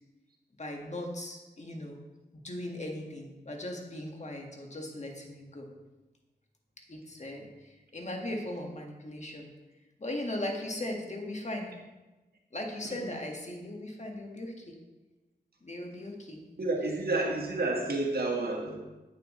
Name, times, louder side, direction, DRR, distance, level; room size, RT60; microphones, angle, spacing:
voice 1, 0.6-2.0 2.3-5.7 6.9-9.5 10.0-11.7 12.5-14.7 15.6-16.4, left 1 dB, 40° left, 1 dB, 1.7 m, -38 dB
voice 2, 16.6-18.8, right 2 dB, 60° right, 0 dB, 1.6 m, -30 dB
8.6 x 7.3 x 3.2 m, 1.1 s
cardioid pair, 45°, 18 cm